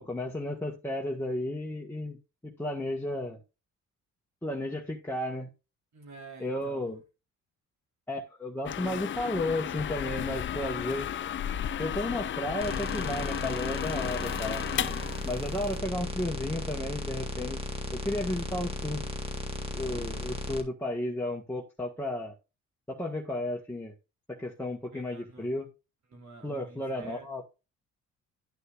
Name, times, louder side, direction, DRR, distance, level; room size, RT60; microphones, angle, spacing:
voice 1, 0.0-2.2 2.4-3.4 4.4-5.5 6.4-7.0 8.1-11.1 11.8-14.6 15.2-17.6 17.9-19.0 19.7-22.3 22.9-23.9 24.3-25.7 26.4-27.4, left 1 dB, 5° left, 1.5 m, -33 dB
voice 2, 5.9-7.0 19.7-20.2 24.9-25.6 26.1-27.5, right 4 dB, 65° right, 3.6 m, -49 dB
sound 1, 8.7-15.8, left 10 dB, 40° left, 0.5 m, -34 dB
sound 2, 12.6-20.6, left 1 dB, 20° right, 1.9 m, -35 dB
11.5 x 6.4 x 2.4 m
cardioid pair, 90°, 30 cm